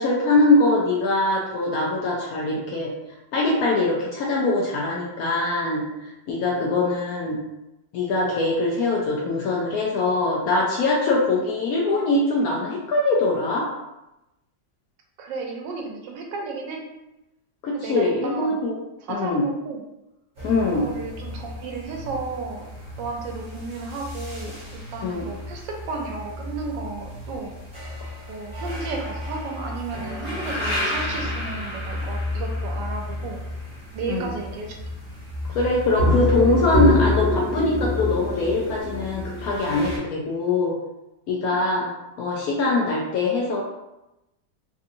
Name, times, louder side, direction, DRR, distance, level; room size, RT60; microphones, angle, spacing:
voice 1, 0.0-2.9 3.3-5.8 6.3-7.4 7.9-13.7 17.6-18.8 19.1-19.4 20.4-20.8 25.0-25.3 34.1-34.3 35.5-40.8 41.3-41.9 42.2-43.6, left 2 dB, 70° left, -2 dB, 0.9 m, -22 dB
voice 2, 15.2-16.8 17.7-18.6 19.1-19.8 20.8-22.7 23.0-27.5 28.3-33.4 33.9-34.8 41.5-41.6, right 4 dB, 80° right, 1 dB, 1.3 m, -33 dB
inside the well, 20.4-40.0, left 2 dB, 35° right, 1.2 m, -29 dB
3.6 x 2.7 x 2.6 m, 0.94 s
omnidirectional pair, 2.0 m